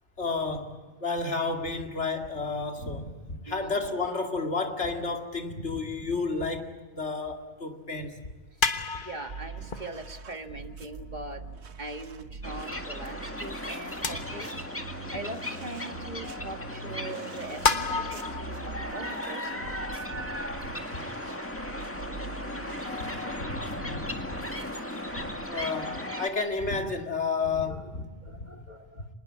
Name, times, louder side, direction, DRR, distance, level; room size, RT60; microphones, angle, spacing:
voice 1, 0.2-8.3 20.1-20.2 20.6-21.0 22.8-24.4 24.9-28.0 28.4-28.5, left 4 dB, 85° left, 2.6 m, -32 dB
voice 2, 3.5-3.8 8.5-11.4 11.8-19.7 27.5-29.1, right 2 dB, 40° right, 1.8 m, -42 dB
sound 1, 7.5-7.6 8.6-10.3 10.8-10.9 11.9-12.0 13.0-13.1 14.0-14.7 15.1-15.2 16.2-16.3 17.3-18.4, left 4 dB, 50° left, 1.4 m, -30 dB
sound 2, 9.3-25.5, right 4 dB, 75° right, 1.4 m, -44 dB
sound 3, 12.4-26.3, left 1 dB, 10° left, 2.0 m, -36 dB
26.0 x 20.5 x 8.5 m
omnidirectional pair, 1.1 m